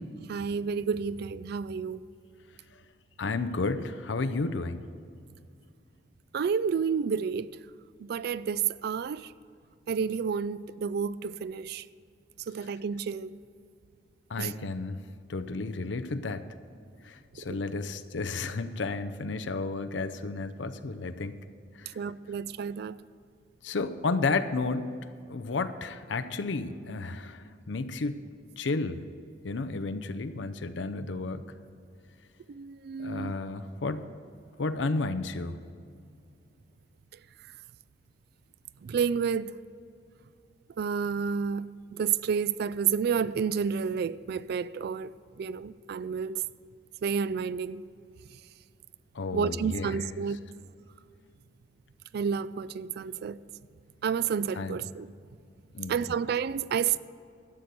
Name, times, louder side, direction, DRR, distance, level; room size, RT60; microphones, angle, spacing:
voice 1, 0.3-2.0 6.3-7.5 8.0-9.3 9.9-11.9 12.5-13.4 14.4-14.5 17.4-17.5 22.0-23.0 32.5-33.3 38.8-39.5 40.8-46.4 47.0-47.8 49.3-50.4 52.1-53.4 54.0-55.1 55.9-57.0, right 6 dB, 55° right, 0.3 m, -30 dB
voice 2, 3.2-4.8 14.3-15.0 15.3-16.4 17.0-21.4 21.8-21.9 23.6-24.9 25.3-28.2 28.6-29.0 29.4-31.4 33.0-34.1 34.6-35.6 49.1-50.1 54.5-54.8 55.7-55.9, left 3 dB, 75° left, 0.6 m, -32 dB
12.0 x 7.8 x 6.8 m
head